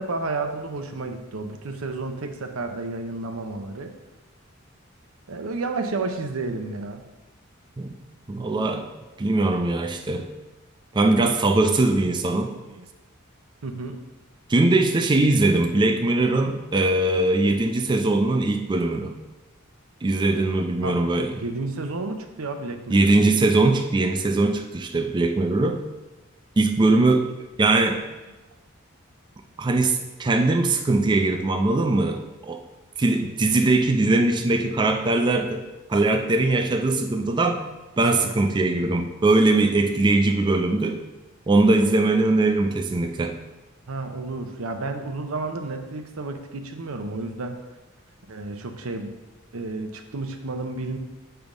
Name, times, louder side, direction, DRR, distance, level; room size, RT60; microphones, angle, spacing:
voice 1, 0.0-3.9 5.3-7.0 12.7-12.9 13.6-14.0 20.8-21.0 21.3-23.2 43.9-47.5 48.3-49.1 49.5-51.0, right 3 dB, 85° right, 5 dB, 0.7 m, -31 dB
voice 2, 8.3-8.9 9.2-10.3 10.9-12.5 14.5-19.1 20.0-21.3 22.9-25.8 26.6-27.3 27.6-28.0 29.6-32.6 33.0-35.6 35.9-37.6 38.0-41.0 41.5-43.3, right 2 dB, 20° right, 4 dB, 0.4 m, -21 dB
7.1 x 3.4 x 5.2 m, 1.1 s
head